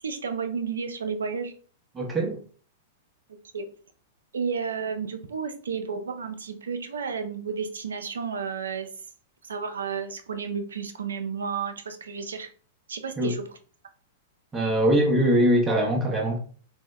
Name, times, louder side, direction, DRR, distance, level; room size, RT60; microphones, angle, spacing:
voice 1, 0.0-1.5 3.5-3.7 4.3-8.9 9.4-12.5 12.9-13.6, right 6 dB, 80° right, 0.4 m, -32 dB
voice 2, 1.9-2.4 13.2-13.3 14.5-16.4, equal, 20° right, 0.8 m, -22 dB
3.5 x 2.1 x 3.1 m
hypercardioid pair, 110°, 0 cm